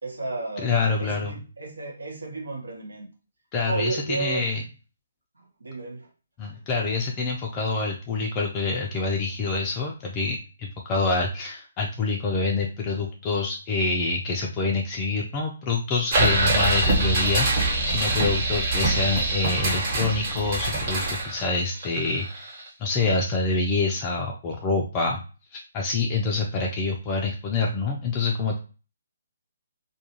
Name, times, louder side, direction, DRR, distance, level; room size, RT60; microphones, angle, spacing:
voice 1, 0.0-3.0 3.6-4.4 5.3-6.1, right 3 dB, 80° right, 0 dB, 1.0 m, -33 dB
voice 2, 0.6-1.4 3.5-4.6 6.4-22.5 22.8-25.2 25.5-28.6, left 3 dB, 25° left, 0 dB, 0.4 m, -26 dB
sound 1, 16.1-22.7, right 2 dB, 40° right, 1.1 m, -24 dB
2.3 x 2.1 x 2.9 m, 0.34 s
figure-of-eight pair, 140°, 0 cm